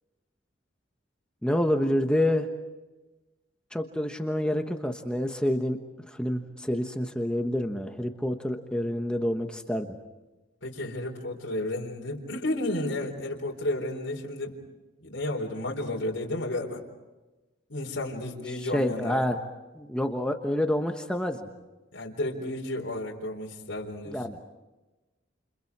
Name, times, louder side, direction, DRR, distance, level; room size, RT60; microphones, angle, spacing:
voice 1, 1.4-2.5 3.7-10.0 18.6-19.4 19.7-21.5 24.1-24.4, left 1 dB, 5° left, 4 dB, 1.2 m, -28 dB
voice 2, 10.6-14.5 15.0-16.8 17.7-19.2 21.9-24.2, left 1 dB, 65° left, -1 dB, 4.1 m, -32 dB
29.5 x 29.5 x 4.8 m, 1.1 s
head